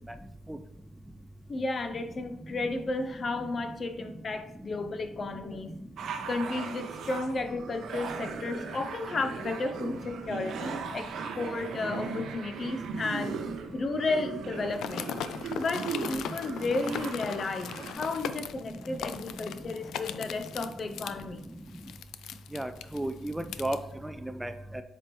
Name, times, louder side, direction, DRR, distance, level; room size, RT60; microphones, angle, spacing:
voice 1, 1.5-5.7 6.3-13.4 13.7-15.1 15.6-21.5, left 3 dB, 40° left, 8 dB, 0.7 m, -33 dB
sound 1, 6.0-17.9, right 5 dB, 70° right, 0.7 m, -38 dB
sound 2, 14.7-23.8, left 9 dB, 80° left, 0.3 m, -39 dB
voice 2, 22.5-24.8, right 1 dB, 5° right, 9 dB, 0.4 m, -34 dB
7.6 x 4.4 x 3.1 m, 0.79 s
cardioid pair, 90°, 0 cm